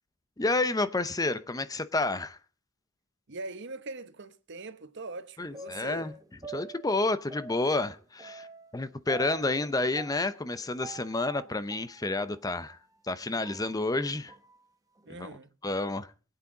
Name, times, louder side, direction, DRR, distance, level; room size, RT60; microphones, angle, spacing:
voice 1, 0.4-2.4 5.4-6.1 6.5-8.5 8.7-12.8 13.0-14.3 15.2-15.3 15.6-16.1, left 2 dB, 20° left, 0.7 m, -30 dB
voice 2, 3.3-6.1 9.4-9.5 15.1-15.5, right 3 dB, 60° right, 1.0 m, -42 dB
sound 1, 5.5-12.8 13.2-14.6 15.0-15.1, right 3 dB, 15° right, 1.0 m, -47 dB
23.0 x 8.5 x 3.8 m
head